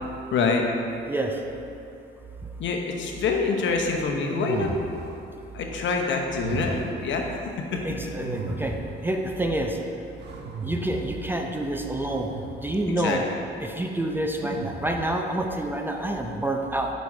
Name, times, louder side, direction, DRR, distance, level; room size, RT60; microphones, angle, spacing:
voice 1, 0.3-0.6 2.6-4.7 5.5-7.2 7.7-7.8 12.9-13.2, left 4 dB, 70° left, 2 dB, 0.9 m, -26 dB
voice 2, 1.1-1.4 6.7-6.8 7.7-8.7 9.0-9.8 10.6-12.3 12.6-13.2 13.6-16.9, right 1 dB, 10° right, 2 dB, 0.6 m, -28 dB
sound 1, 4.3-5.2 6.3-7.0 8.2-9.0 10.2-11.2 12.3-12.8 14.4-15.1, right 3 dB, 55° right, 0.7 m, -34 dB
6.0 x 5.2 x 4.8 m, 2.6 s
cardioid pair, 90°, 20 cm